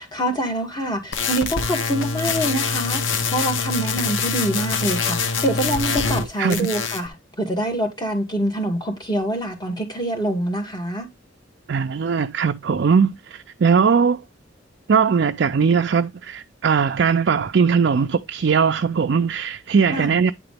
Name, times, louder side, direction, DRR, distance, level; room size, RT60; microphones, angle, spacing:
voice 1, 0.0-11.1 19.9-20.1, right 1 dB, 20° left, 2.0 m, -25 dB
sound 1, 1.1-6.2 6.5-7.1, left 5 dB, 80° left, 1.0 m, -24 dB
voice 2, 11.7-14.2 14.9-20.3, right 6 dB, 60° right, 0.4 m, -19 dB
9.6 x 3.9 x 3.4 m
head